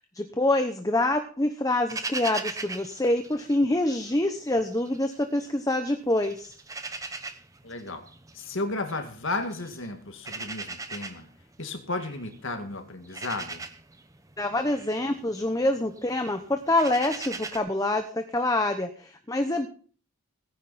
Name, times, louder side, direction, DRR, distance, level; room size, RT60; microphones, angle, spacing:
voice 1, 0.1-6.6 14.4-19.7, left 1 dB, 15° left, 7 dB, 0.9 m, -26 dB
sound 1, 1.9-4.1 4.5-5.8 6.1-17.6, right 3 dB, 15° right, 0.9 m, -39 dB
voice 2, 7.6-8.1 8.3-11.3 11.6-13.6, left 2 dB, 60° left, 6 dB, 2.1 m, -33 dB
18.5 x 10.0 x 4.2 m, 0.43 s
head